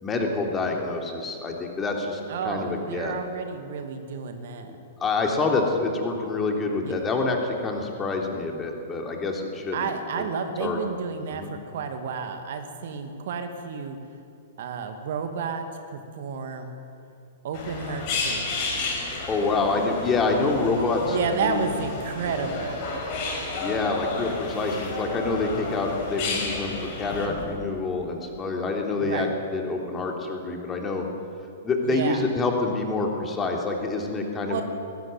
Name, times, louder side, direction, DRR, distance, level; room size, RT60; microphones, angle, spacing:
voice 1, 0.0-3.1 5.0-9.9 10.2-10.3 10.6-10.8 11.3-11.5 19.3-21.2 21.4-21.7 23.6-31.0 31.6-34.6, left 3 dB, 15° left, 1 dB, 3.3 m, -27 dB
voice 2, 2.3-4.7 6.8-6.9 9.7-14.0 14.6-15.6 15.9-16.7 17.4-18.6 21.0-22.9 29.0-29.3 31.8-32.3 34.5-34.6, right 5 dB, 50° right, 7 dB, 2.1 m, -31 dB
sound 1, 17.5-27.6, left 3 dB, 40° left, 5.2 m, -32 dB
20.0 x 17.5 x 9.3 m, 2.5 s
figure-of-eight pair, 105°, 0 cm